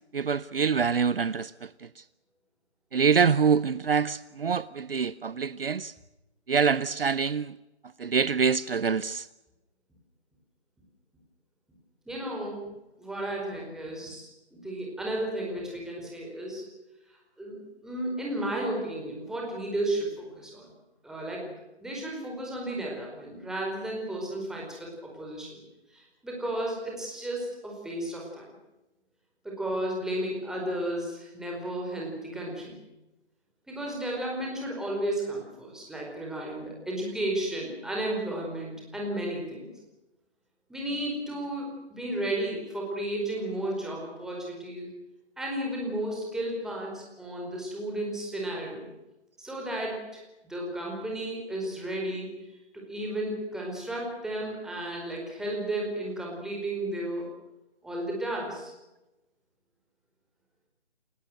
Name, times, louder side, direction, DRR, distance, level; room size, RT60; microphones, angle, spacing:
voice 1, 0.1-1.7 2.9-5.9 6.5-7.5 8.0-9.3, right 6 dB, 55° right, 0.8 m, -25 dB
voice 2, 12.1-12.7 13.0-16.6 17.4-20.6 21.0-21.5 21.8-25.6 25.9-28.4 29.4-32.8 33.7-39.7 40.7-44.9 45.4-48.9 49.4-52.3 52.7-57.3 57.8-58.7, right 1 dB, ahead, 4.8 m, -33 dB
29.5 x 17.0 x 7.8 m
figure-of-eight pair, 155°, 34 cm